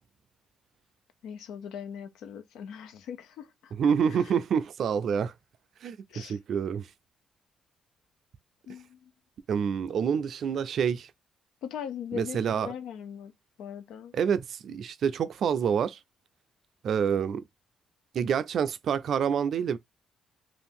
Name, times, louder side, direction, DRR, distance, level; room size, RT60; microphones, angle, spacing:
voice 1, 1.2-3.7 4.1-4.3 6.1-6.4 8.7-9.1 11.6-13.3 13.6-14.1, left 8 dB, 85° left, 0.5 m, -40 dB
voice 2, 3.8-5.3 5.8-6.9 9.5-11.1 12.1-12.7 14.1-16.0 16.8-17.4 18.1-19.8, right 7 dB, 65° right, 0.4 m, -27 dB
2.6 x 2.4 x 3.4 m
cardioid pair, 90°, 0 cm